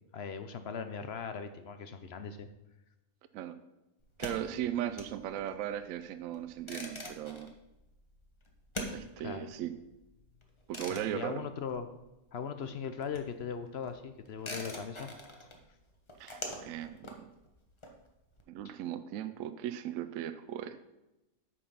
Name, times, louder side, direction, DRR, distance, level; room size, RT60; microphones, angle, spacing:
voice 1, 0.1-2.5 9.2-9.5 10.9-11.9 12.3-15.1 15.4-15.5 18.6-18.7, left 6 dB, 60° left, 9 dB, 0.7 m, -39 dB
sound 1, 4.0-12.4 12.6-18.4, left 1 dB, 25° left, 1.0 m, -45 dB
voice 2, 4.2-7.5 8.9-9.7 10.7-11.4 16.2-17.3 18.5-20.8, right 11 dB, 70° right, 11 dB, 0.9 m, -37 dB
8.5 x 5.5 x 5.5 m, 0.97 s
omnidirectional pair, 1.5 m